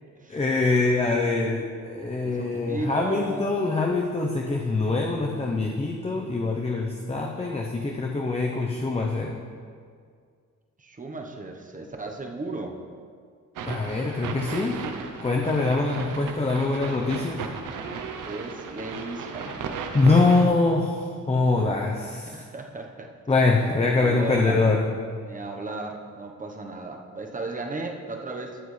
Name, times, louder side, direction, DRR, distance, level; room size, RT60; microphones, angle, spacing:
voice 1, 0.3-9.3 13.6-14.8 15.2-17.4 19.9-22.4 23.3-24.9, left 3 dB, 20° left, 0 dB, 0.8 m, -24 dB
voice 2, 2.2-3.5 10.8-12.8 18.2-19.9 22.3-23.1 23.9-24.8 25.2-28.6, right 2 dB, 25° right, 2 dB, 1.0 m, -35 dB
sound 1, 13.5-20.4, right 5 dB, 85° right, 0.8 m, -35 dB
12.0 x 7.8 x 3.3 m, 2.1 s
cardioid pair, 95°, 31 cm